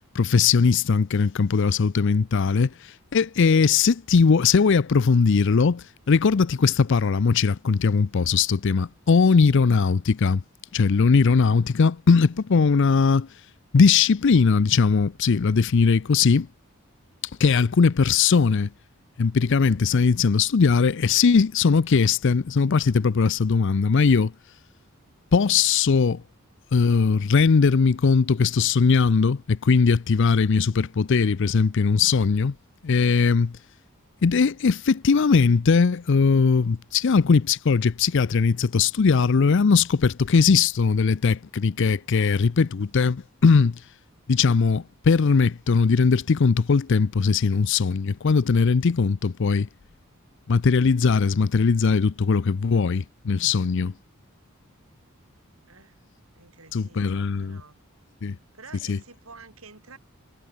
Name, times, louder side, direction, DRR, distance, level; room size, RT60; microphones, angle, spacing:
voice 1, 0.1-10.4 10.7-13.3 13.7-16.5 17.4-18.7 19.2-24.3 25.3-26.2 26.7-32.5 32.8-33.6 34.2-43.8 44.3-49.7 50.5-53.9 56.7-57.6 58.2-58.4 58.9-59.0, left 5 dB, 60° left, 0.5 m, -20 dB
voice 2, 55.7-56.0 56.3-57.8 58.5-60.0, right 4 dB, 75° right, 4.5 m, -49 dB
head